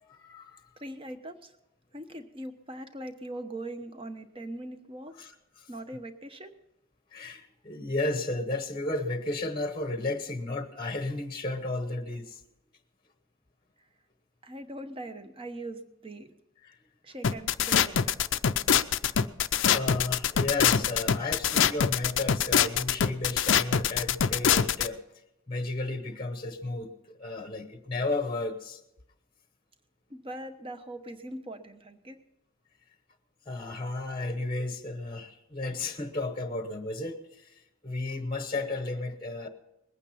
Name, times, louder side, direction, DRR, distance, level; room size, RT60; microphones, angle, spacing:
voice 1, 0.0-0.7 5.2-5.7 7.1-12.4 16.6-16.8 18.9-19.2 19.7-25.0 25.5-28.8 33.5-39.5, left 2 dB, 25° left, 8 dB, 1.0 m, -33 dB
voice 2, 0.8-1.5 1.9-5.1 5.7-6.5 14.4-16.3 17.0-18.2 30.1-32.2, right 1 dB, 25° right, 8 dB, 1.0 m, -41 dB
sound 1, 17.2-24.9, left 8 dB, 65° left, 0.5 m, -24 dB
20.5 x 9.0 x 5.7 m, 0.88 s
head